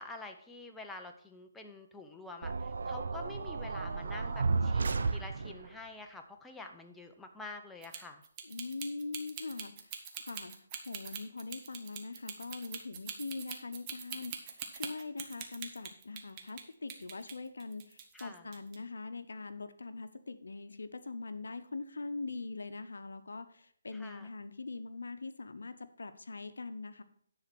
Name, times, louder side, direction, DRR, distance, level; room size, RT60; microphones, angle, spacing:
voice 1, 0.0-8.2 18.1-18.5 23.9-24.3, left 3 dB, 5° left, 3 dB, 0.6 m, -47 dB
sound 1, 2.4-5.8, right 4 dB, 70° right, 0.7 m, -33 dB
sound 2, 7.8-16.6 16.9-18.2 18.5-18.8, right 8 dB, 25° right, 1.0 m, -43 dB
voice 2, 8.4-10.6 10.8-27.0, left 3 dB, 85° left, 11 dB, 0.7 m, -42 dB
9.8 x 4.0 x 6.0 m, 0.64 s
hypercardioid pair, 160°, 0 cm